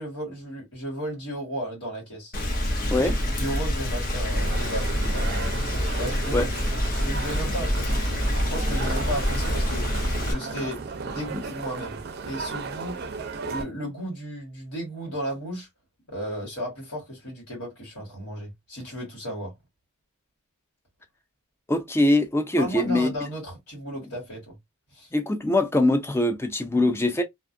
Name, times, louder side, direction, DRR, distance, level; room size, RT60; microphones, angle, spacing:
voice 1, 0.0-2.3 2.9-3.1 3.4-5.5 6.0-6.5 7.0-8.0 8.5-9.9 10.2-13.0 13.4-15.7 16.1-19.5 22.6-24.5 24.9-25.1, right 1 dB, 80° left, 1.5 m, -34 dB
Rain, 2.3-10.3, left 1 dB, 40° left, 0.7 m, -26 dB
sound 1, 4.3-13.6, right 4 dB, 45° right, 0.5 m, -35 dB
voice 2, 21.7-23.1 25.1-27.2, left 1 dB, 10° left, 0.4 m, -22 dB
2.5 x 2.3 x 2.5 m
head